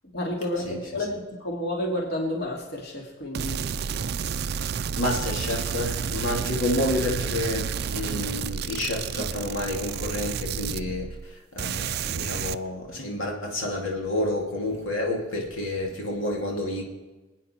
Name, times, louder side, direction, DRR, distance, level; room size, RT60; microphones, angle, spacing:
voice 1, 0.1-1.1 1.4-3.6, left 1 dB, 55° left, 0 dB, 2.5 m, -30 dB
sound 1, 3.3-11.3 11.6-12.6, right 7 dB, 50° right, 0.4 m, -30 dB
voice 2, 5.0-16.8, left 1 dB, 85° left, 0 dB, 2.6 m, -29 dB
26.0 x 9.2 x 4.5 m, 1.2 s
head